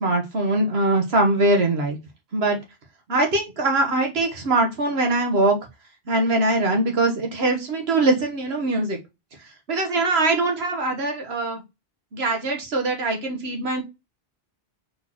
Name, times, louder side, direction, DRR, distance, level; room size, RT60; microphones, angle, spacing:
voice 1, 0.0-2.0 2.3-2.6 3.1-5.5 6.1-9.0 9.7-11.6 12.1-13.8, right 2 dB, 80° right, 1.5 m, -22 dB
4.2 x 4.0 x 2.9 m
omnidirectional pair, 1.1 m